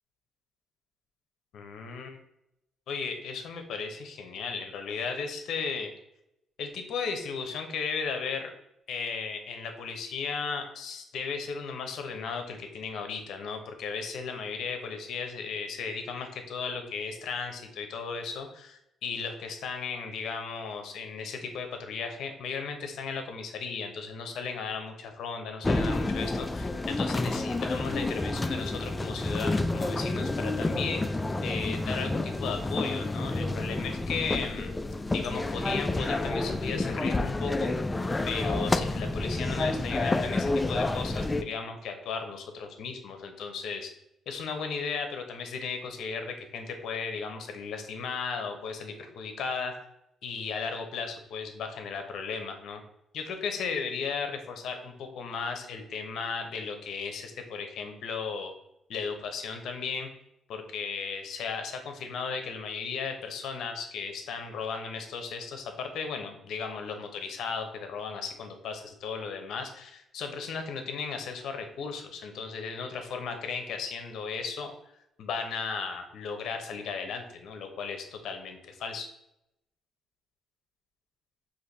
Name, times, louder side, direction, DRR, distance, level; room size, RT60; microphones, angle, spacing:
voice 1, 1.5-2.2 2.9-5.9 6.6-8.5 8.9-31.0 31.4-34.7 35.1-37.7 38.3-43.9 44.3-49.7 50.2-52.8 53.1-58.5 58.9-60.1 60.5-74.7 75.2-79.1, left 5 dB, 75° left, 5 dB, 0.8 m, -35 dB
sound 1, 25.6-41.4, left 2 dB, 20° left, 0.3 m, -29 dB
5.0 x 2.7 x 3.9 m, 0.83 s
cardioid pair, 90°, 0 cm